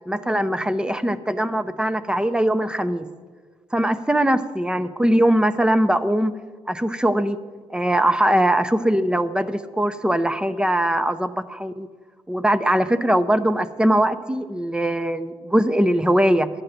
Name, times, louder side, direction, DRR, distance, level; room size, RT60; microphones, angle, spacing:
voice 1, 0.1-3.1 3.7-6.3 6.7-7.4 7.7-11.9 12.3-16.5, right 1 dB, 5° right, 12 dB, 0.7 m, -21 dB
11.5 x 9.0 x 6.8 m, 1.5 s
cardioid pair, 95°, 12 cm